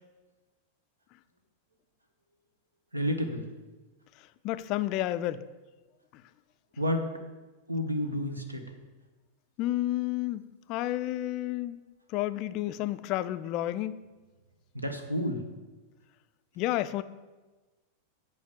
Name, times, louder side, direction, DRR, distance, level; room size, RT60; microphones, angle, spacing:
voice 1, 2.9-3.5 6.8-7.1 7.7-8.6 14.7-15.4, equal, 85° right, 0.9 m, -30 dB
voice 2, 4.4-5.4 9.6-11.8 12.1-14.0 16.6-17.0, left 14 dB, 40° left, 0.3 m, -31 dB
7.1 x 4.8 x 6.4 m
figure-of-eight pair, 90°, 0 cm